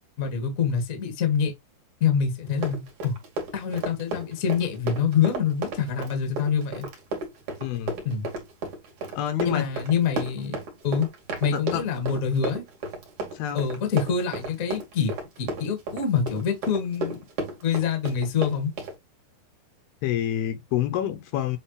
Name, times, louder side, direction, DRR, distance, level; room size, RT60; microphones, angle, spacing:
voice 1, 0.2-1.5 2.0-3.1 3.5-6.9 8.0-8.3 9.4-10.6 10.8-11.1 11.4-12.6 13.5-15.1 15.4-17.2 17.6-18.7, left 7 dB, 35° left, 1.3 m, -25 dB
Run, 2.5-19.0, right 2 dB, 50° right, 3.4 m, -33 dB
voice 2, 7.6-8.0 9.1-9.7 11.5-11.8 13.3-13.6 20.0-21.6, left 11 dB, 75° left, 2.6 m, -27 dB
9.2 x 3.8 x 3.2 m
omnidirectional pair, 4.8 m